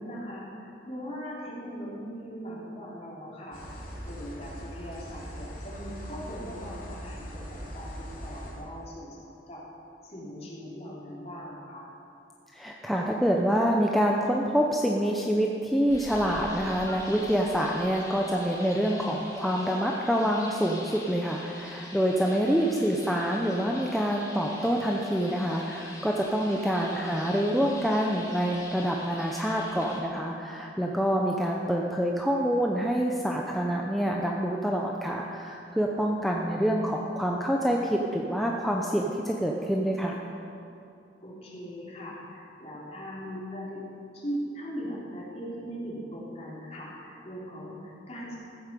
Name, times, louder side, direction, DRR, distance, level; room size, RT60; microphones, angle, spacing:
voice 1, 0.0-3.6 4.0-9.6 10.0-11.9 18.2-18.3 26.1-26.7 36.1-36.5 41.2-43.8 44.1-48.4, equal, 35° left, -5 dB, 3.5 m, -40 dB
sound 1, 3.5-8.5, equal, 55° left, 3.2 m, -41 dB
voice 2, 12.5-40.2, equal, ahead, -1 dB, 0.7 m, -26 dB
sound 2, 15.9-30.0, left 2 dB, 20° left, 2.2 m, -44 dB
15.0 x 8.8 x 6.8 m, 2.7 s
head